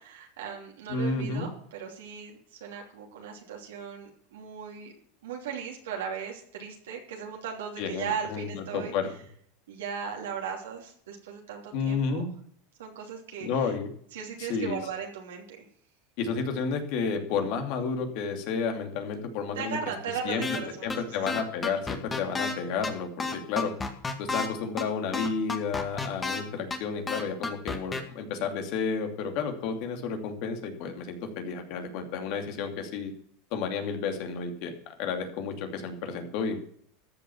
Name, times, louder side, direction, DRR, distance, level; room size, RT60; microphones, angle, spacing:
voice 1, 0.0-4.9 5.2-8.9 9.7-12.3 12.8-13.7 14.1-15.6 19.5-20.9, right 7 dB, 85° right, 0 dB, 3.0 m, -37 dB
voice 2, 0.9-1.5 7.8-9.1 11.7-12.3 13.4-13.9 14.4-14.8 16.2-19.8 20.2-20.4 20.8-23.7 24.2-33.1 33.5-34.7 35.0-36.6, left 5 dB, 60° left, 5 dB, 2.7 m, -31 dB
sound 1, 20.4-20.6 20.9-21.0 21.3-22.5 22.8-22.9 23.2-24.5 24.8-24.9 25.1-26.4 26.7-26.8 27.1-28.0, left 3 dB, 20° left, 2.0 m, -30 dB
13.5 x 7.0 x 7.2 m, 0.63 s
hypercardioid pair, 110°, 0 cm